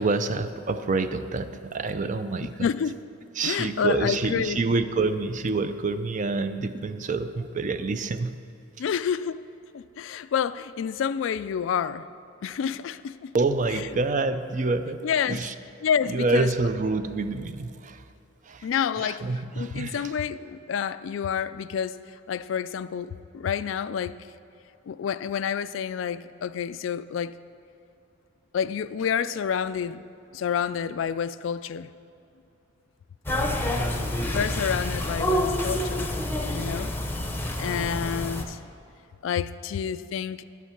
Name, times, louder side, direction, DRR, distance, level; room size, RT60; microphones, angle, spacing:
voice 1, 0.0-2.7 3.3-8.4 13.3-15.5 16.1-18.0 18.4-18.7 19.0-20.1, right 3 dB, 40° right, 10 dB, 0.5 m, -27 dB
voice 2, 2.6-3.0 3.4-4.6 8.8-9.4 9.7-12.1 12.4-13.3 15.0-15.4 15.8-16.5 18.6-19.2 19.6-22.0 22.3-24.1 24.9-27.4 28.5-30.0 30.3-31.9 34.0-36.1 36.5-36.9 37.6-38.6 39.2-40.4, left 7 dB, 70° left, 14 dB, 0.3 m, -28 dB
sound 1, 33.3-38.4, left 1 dB, 10° left, 0.7 m, -28 dB
11.0 x 8.3 x 5.8 m, 2.7 s
head